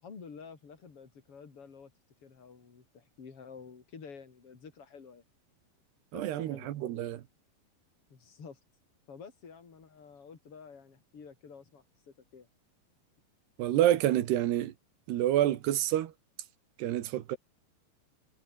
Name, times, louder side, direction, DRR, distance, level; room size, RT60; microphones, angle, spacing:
voice 1, 0.0-1.9 2.2-5.2 6.1-6.7 8.1-8.6 9.1-12.5, left 5 dB, 35° left, 4.2 m, -50 dB
voice 2, 6.1-7.2 13.6-14.7 15.1-16.1 16.8-17.4, right 13 dB, 75° right, 3.4 m, -28 dB
omnidirectional pair, 5.0 m